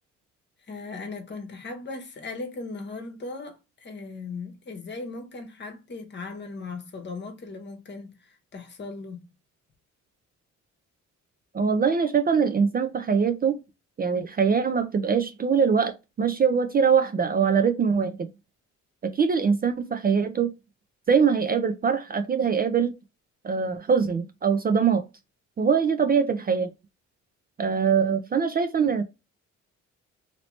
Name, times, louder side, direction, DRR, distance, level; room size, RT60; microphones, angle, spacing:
voice 1, 0.7-9.3, left 3 dB, 35° left, 1.0 m, -38 dB
voice 2, 11.5-13.6 14.0-18.3 19.0-20.5 21.1-22.9 23.4-25.0 25.6-26.7 27.6-29.0, right 6 dB, 30° right, 0.4 m, -23 dB
2.9 x 2.8 x 3.1 m
cardioid pair, 90°, 30 cm